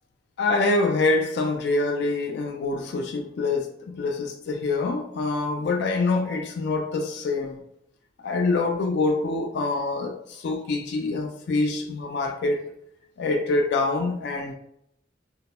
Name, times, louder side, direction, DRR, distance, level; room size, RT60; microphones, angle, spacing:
voice 1, 0.4-7.6 8.2-12.7 13.2-14.5, left 3 dB, 65° left, 3 dB, 0.3 m, -25 dB
2.1 x 2.1 x 2.8 m, 0.73 s
head